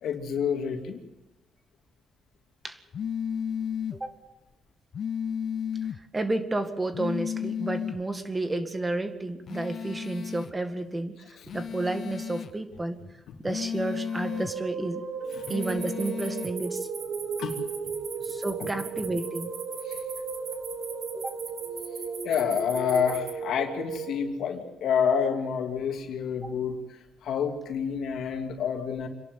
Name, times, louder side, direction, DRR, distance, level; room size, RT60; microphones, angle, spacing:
voice 1, 0.0-1.0 15.4-15.5 17.4-17.6 18.6-18.7 19.9-20.0 22.2-26.8 27.2-29.1, left 7 dB, 75° left, 4 dB, 2.7 m, -28 dB
sound 1, 2.9-4.0 4.9-6.0 6.9-8.0 9.5-10.5 11.5-12.5 13.5-14.5 15.5-16.5, left 8 dB, 55° left, 0.7 m, -33 dB
voice 2, 6.1-11.2 11.5-13.0 13.4-15.0 15.5-16.9 18.2-19.5 21.1-21.4 26.4-26.5, right 2 dB, 20° right, 8 dB, 2.0 m, -31 dB
sound 2, 13.9-24.2, right 5 dB, 85° right, 2.8 m, -36 dB
sound 3, 15.3-23.3, right 5 dB, 50° right, 3.1 m, -41 dB
26.5 x 11.5 x 9.2 m, 1.0 s
cardioid pair, 90°, 0 cm